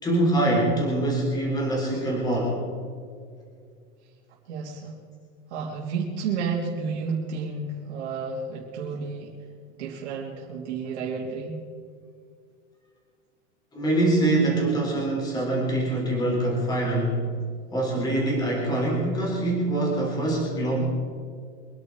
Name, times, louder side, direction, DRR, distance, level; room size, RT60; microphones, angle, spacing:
voice 1, 0.0-2.6 13.7-17.3 17.7-20.8, right 1 dB, 10° left, -2 dB, 3.7 m, -24 dB
voice 2, 4.5-4.9 5.5-9.3 9.8-11.5, right 5 dB, 65° right, -4 dB, 3.2 m, -31 dB
25.0 x 10.5 x 4.8 m, 2.2 s
supercardioid pair, 175°, 36 cm